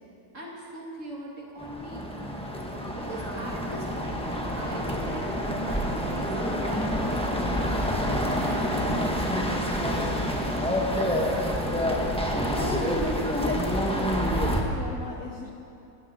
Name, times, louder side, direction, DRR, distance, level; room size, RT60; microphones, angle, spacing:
voice 1, 0.3-2.1 3.0-7.8 8.2-9.9, right 2 dB, 40° right, -3 dB, 3.0 m, -40 dB
sound 1, 1.6-14.6, equal, 5° left, 1.2 m, -27 dB
voice 2, 12.6-13.0 13.3-15.5, left 4 dB, 50° left, 1 dB, 1.2 m, -35 dB
20.0 x 16.0 x 4.4 m, 2.7 s
omnidirectional pair, 2.1 m